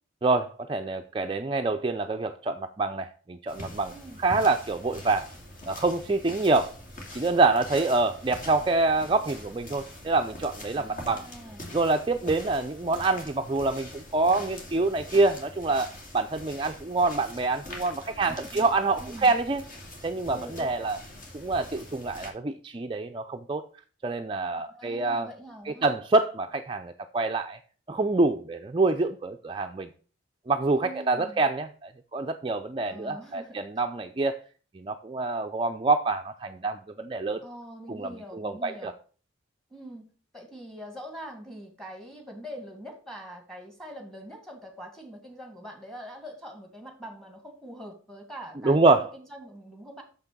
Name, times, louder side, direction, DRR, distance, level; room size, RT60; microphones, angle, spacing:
voice 1, 0.2-3.9 4.2-5.3 5.7-6.7 7.1-11.2 11.7-19.6 20.0-21.0 21.3-23.6 24.0-25.3 25.7-27.6 27.9-29.9 30.5-34.4 34.7-37.4 37.9-38.9 48.6-49.0, right 3 dB, 25° right, 5 dB, 0.4 m, -26 dB
sound 1, 3.5-22.3, left 1 dB, 40° left, 2.5 m, -44 dB
voice 2, 10.8-11.6 18.1-18.6 19.0-19.3 20.3-20.7 24.7-25.9 30.8-31.4 32.9-33.6 37.4-38.9 39.7-40.1 40.3-50.0, equal, ahead, 4 dB, 2.0 m, -43 dB
6.9 x 5.9 x 6.7 m, 0.40 s
head